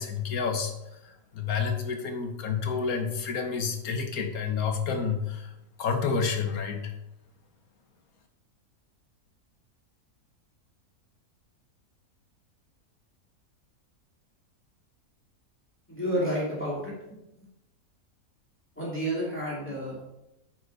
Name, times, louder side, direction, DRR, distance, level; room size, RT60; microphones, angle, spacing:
voice 1, 0.0-5.5 5.8-7.0, left 6 dB, 75° left, 5 dB, 1.6 m, -29 dB
voice 2, 15.9-16.9 18.8-20.0, equal, 10° left, -7 dB, 2.8 m, -30 dB
9.9 x 5.9 x 4.0 m, 0.92 s
omnidirectional pair, 1.6 m